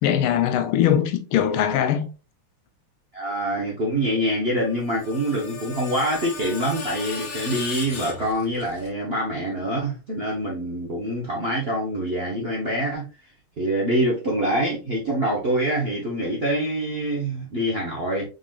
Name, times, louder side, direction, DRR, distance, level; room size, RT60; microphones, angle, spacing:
voice 1, 0.0-2.1, left 10 dB, 80° left, 1.5 m, -21 dB
voice 2, 3.1-13.1 13.6-18.3, right 1 dB, 55° right, 0.7 m, -25 dB
Screech, 4.6-8.9, left 4 dB, 50° left, 1.3 m, -36 dB
4.0 x 3.7 x 2.3 m
omnidirectional pair, 2.3 m